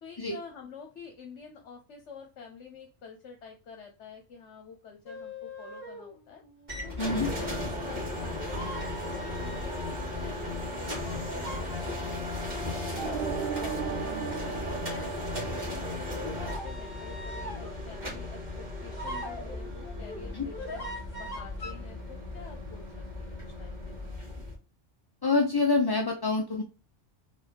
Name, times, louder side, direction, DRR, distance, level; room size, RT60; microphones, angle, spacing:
voice 1, 0.0-6.4 6.8-12.3 12.7-14.2 14.6-20.9 21.1-24.1, left 5 dB, 75° left, 3 dB, 1.2 m, -48 dB
sound 1, 5.1-10.1 11.4-17.9 18.9-21.7, right 1 dB, 50° left, 1.8 m, -42 dB
sound 2, 6.7-24.5, left 1 dB, 40° right, 2.4 m, -36 dB
voice 2, 7.0-7.3 20.3-20.5 25.2-26.6, left 3 dB, 30° left, 2 dB, 0.5 m, -26 dB
sound 3, 13.0-16.0, right 8 dB, 65° right, 0.8 m, -37 dB
4.8 x 3.8 x 5.2 m, 0.33 s
omnidirectional pair, 1.2 m